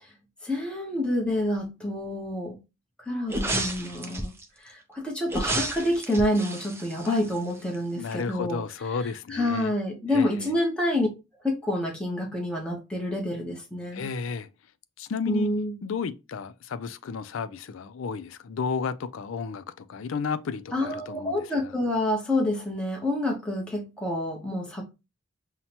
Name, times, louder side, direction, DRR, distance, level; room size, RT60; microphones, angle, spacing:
voice 1, 0.4-2.6 3.1-4.3 4.6-8.6 9.3-11.1 11.4-14.1 15.3-15.7 20.7-24.8, left 1 dB, 5° left, 0.8 m, -28 dB
sound 1, 3.3-4.4 5.3-7.8 8.1-8.2, right 1 dB, 10° right, 0.4 m, -31 dB
voice 2, 8.0-9.7 10.1-10.5 13.9-14.5 15.0-15.5 15.8-21.7, left 5 dB, 75° left, 0.4 m, -33 dB
5.6 x 2.1 x 2.8 m
head